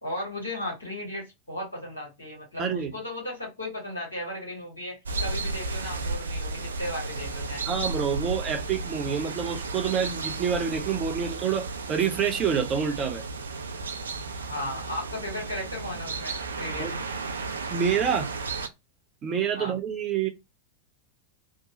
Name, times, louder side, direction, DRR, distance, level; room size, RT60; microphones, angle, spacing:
voice 1, 0.0-7.6 14.5-17.0 19.5-19.8, left 1 dB, 80° left, 1.5 m, -36 dB
voice 2, 2.6-2.9 7.6-13.2 16.8-16.9 17.7-18.3 19.2-20.3, right 7 dB, 30° right, 0.7 m, -27 dB
sound 1, 5.1-18.7, right 3 dB, 70° right, 0.4 m, -33 dB
2.9 x 2.2 x 2.7 m
figure-of-eight pair, 90°, 0 cm